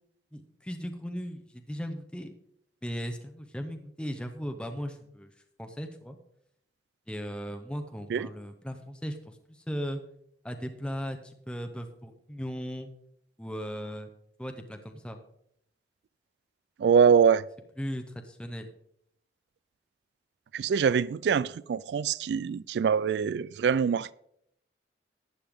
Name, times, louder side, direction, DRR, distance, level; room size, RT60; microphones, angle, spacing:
voice 1, 0.3-2.3 2.8-5.3 5.6-6.2 7.1-10.0 10.4-12.9 13.4-14.1 14.4-15.2 17.8-18.7, equal, 5° left, 0.7 m, -37 dB
voice 2, 16.8-17.4 20.5-24.1, right 6 dB, 70° right, 0.3 m, -24 dB
11.5 x 9.4 x 3.6 m
head